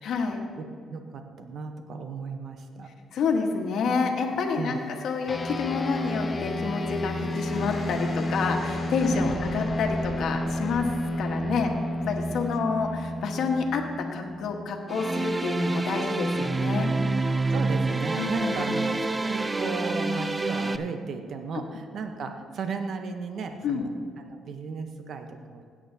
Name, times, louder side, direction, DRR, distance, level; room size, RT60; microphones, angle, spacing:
voice 1, 0.0-0.4 3.1-10.9 11.2-11.7 12.1-16.9 18.2-18.7 23.6-23.9, left 5 dB, 70° left, 3 dB, 1.3 m, -28 dB
voice 2, 0.6-2.9 4.5-4.8 9.1-9.4 17.5-25.6, right 4 dB, 60° right, 6 dB, 0.9 m, -35 dB
sound 1, 3.7-13.0, left 3 dB, 50° left, 1.4 m, -40 dB
sound 2, 5.3-15.0, left 1 dB, 25° left, 0.8 m, -31 dB
sound 3, 14.9-20.8, right 2 dB, 20° right, 0.5 m, -27 dB
16.5 x 8.6 x 2.8 m, 2.1 s
cardioid pair, 90°, 0 cm